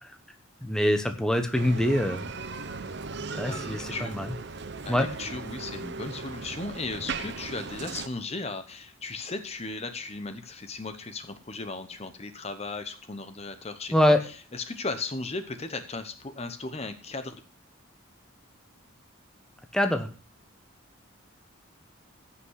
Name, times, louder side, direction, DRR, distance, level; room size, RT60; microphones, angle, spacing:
voice 1, 0.6-2.3 3.4-4.3 4.9-5.1 13.9-14.2 19.7-20.1, left 1 dB, 5° left, 6 dB, 1.0 m, -24 dB
Bicycle, 1.5-8.1, right 4 dB, 55° right, 0.9 m, -37 dB
voice 2, 3.3-4.3 4.8-17.4, left 3 dB, 30° left, 9 dB, 0.9 m, -36 dB
15.5 x 5.8 x 6.3 m, 0.39 s
head